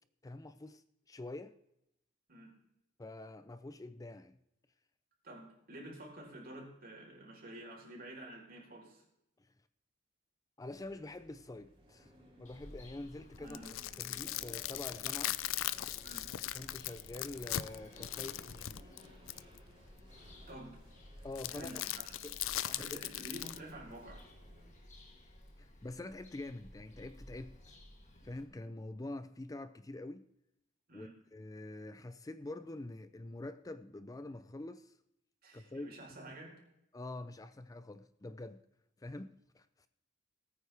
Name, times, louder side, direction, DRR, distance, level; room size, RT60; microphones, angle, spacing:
voice 1, 0.2-1.5 3.0-4.4 10.6-13.6 14.0-15.4 16.5-19.1 21.2-21.9 22.2-22.4 22.8-23.0 25.6-27.7 28.2-30.2 30.9-35.0 35.5-36.0 36.9-38.6 39.0-39.9, left 2 dB, 20° left, 0.4 m, -46 dB
voice 2, 5.2-9.0 13.4-13.8 16.0-16.3 20.5-20.8 21.5-22.2 22.6-24.2 30.9-31.1 35.4-36.6, right 1 dB, 50° right, 4.0 m, -49 dB
sound 1, 10.7-24.7, equal, 25° right, 3.5 m, -60 dB
Bird vocalization bird call bird song, 12.4-28.4, left 1 dB, 40° left, 2.1 m, -56 dB
sound 2, 13.3-19.6 21.4-23.6, left 14 dB, 80° left, 0.4 m, -39 dB
19.5 x 9.2 x 3.4 m
head